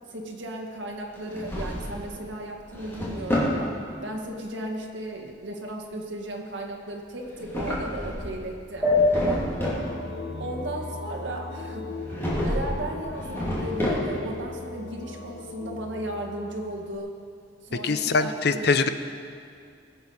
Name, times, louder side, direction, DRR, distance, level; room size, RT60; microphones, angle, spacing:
voice 1, 0.1-3.8 4.0-8.9 10.4-11.9 12.4-17.1 17.6-18.8, right 1 dB, 70° right, 1 dB, 1.8 m, -35 dB
Drawer open or close, 1.1-2.1 2.5-3.6 7.2-8.4 8.8-9.9 12.1-12.8 13.1-14.4, equal, 10° left, 2.7 m, -29 dB
sound 1, 8.8-11.8, left 2 dB, 10° right, 1.8 m, -27 dB
sound 2, 9.4-17.0, left 3 dB, 80° left, 1.0 m, -39 dB
voice 2, 17.8-18.9, left 4 dB, 55° left, 10 dB, 0.6 m, -23 dB
20.5 x 7.9 x 5.5 m, 2.3 s
head